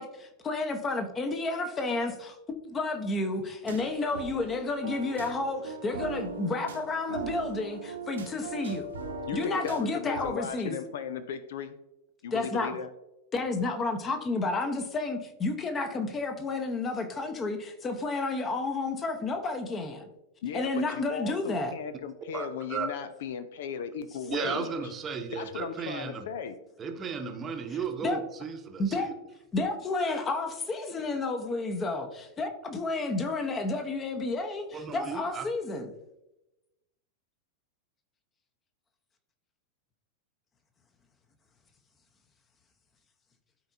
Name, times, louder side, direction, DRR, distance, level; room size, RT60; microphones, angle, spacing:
voice 1, 0.0-2.4 2.7-8.9 9.3-10.7 12.3-12.8 13.3-20.1 20.5-21.7 28.0-28.2 28.8-29.1 29.5-35.9, left 3 dB, 20° left, 6 dB, 1.0 m, -31 dB
sound 1, 3.7-10.3, right 3 dB, 65° right, 1.0 m, -39 dB
voice 2, 9.3-11.8 12.2-12.9 20.4-24.7 25.3-26.6, left 7 dB, 55° left, 12 dB, 0.5 m, -36 dB
voice 3, 22.3-22.9 24.3-26.3 26.8-29.1 34.7-35.4, right 5 dB, 25° right, 5 dB, 0.9 m, -35 dB
12.5 x 4.5 x 2.7 m, 0.96 s
figure-of-eight pair, 90°, 0 cm